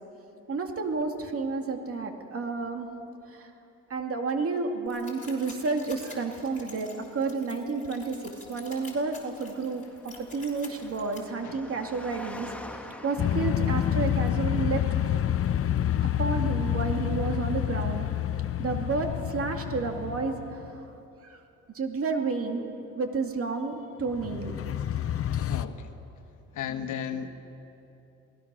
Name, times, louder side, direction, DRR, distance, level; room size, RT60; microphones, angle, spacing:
voice 1, 0.5-2.9 3.3-3.5 3.9-12.5 13.0-14.8 16.2-18.0 18.6-20.9 21.2-21.4 21.7-24.5, right 4 dB, 50° right, 4 dB, 2.5 m, -31 dB
sound 1, 4.9-11.2, left 3 dB, 25° left, 4.5 m, -48 dB
Engine, 8.8-14.4, left 1 dB, 5° left, 1.6 m, -46 dB
voice 2, 11.4-11.8 25.5-26.0 26.5-27.3, left 8 dB, 80° left, 8 dB, 1.3 m, -35 dB
sound 2, 13.2-20.7 24.1-25.7, left 10 dB, 50° left, 0.8 m, -28 dB
27.5 x 19.0 x 6.3 m, 2.9 s
cardioid pair, 90°, 30 cm